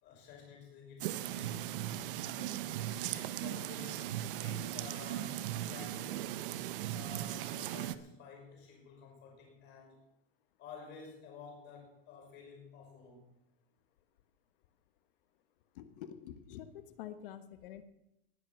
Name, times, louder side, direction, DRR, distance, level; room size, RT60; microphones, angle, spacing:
voice 1, 0.0-6.3 6.9-10.0 10.6-13.3, left 5 dB, 35° left, 1 dB, 5.8 m, -52 dB
sound 1, 1.0-8.0, right 13 dB, 65° right, 0.8 m, -38 dB
voice 2, 15.7-17.8, left 10 dB, 60° left, 11 dB, 1.4 m, -47 dB
19.0 x 7.7 x 6.2 m, 0.86 s
supercardioid pair, 155°, 30 cm